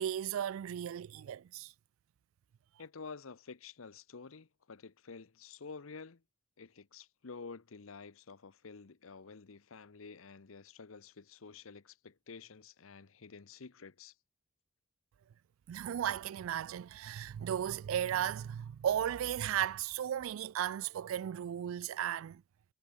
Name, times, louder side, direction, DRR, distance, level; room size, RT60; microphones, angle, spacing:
voice 1, 0.0-1.7 15.7-22.4, right 10 dB, 75° right, 0.3 m, -35 dB
voice 2, 2.8-6.2 6.6-14.1, left 4 dB, 75° left, 0.8 m, -50 dB
head